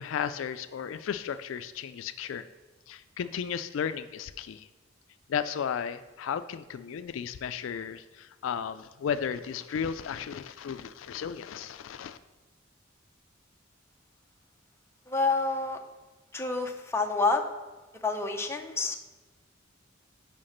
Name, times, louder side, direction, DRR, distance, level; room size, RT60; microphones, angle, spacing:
voice 1, 0.0-2.5 2.9-4.7 5.3-12.2, left 7 dB, 80° left, 12 dB, 0.3 m, -34 dB
voice 2, 15.1-15.8 16.3-17.4 18.0-19.0, left 3 dB, 15° left, 3 dB, 0.7 m, -28 dB
5.9 x 5.7 x 6.4 m, 1.2 s
head